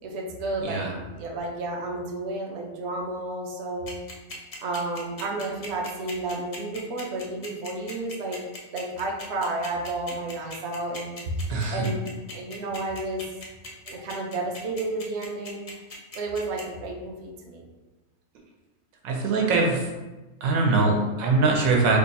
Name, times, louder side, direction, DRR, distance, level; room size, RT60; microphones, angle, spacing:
voice 1, 0.0-3.9 4.6-8.4 8.7-11.2 11.7-13.2 13.9-15.6 16.1-17.6, right 2 dB, 65° right, 0 dB, 0.7 m, -32 dB
sound 1, 3.9-16.6, left 2 dB, 65° left, 0.3 m, -39 dB
voice 2, 11.5-11.9 19.0-19.8 20.4-22.0, right 3 dB, 80° right, 0 dB, 1.1 m, -22 dB
2.9 x 2.3 x 4.0 m, 1.1 s
omnidirectional pair, 1.5 m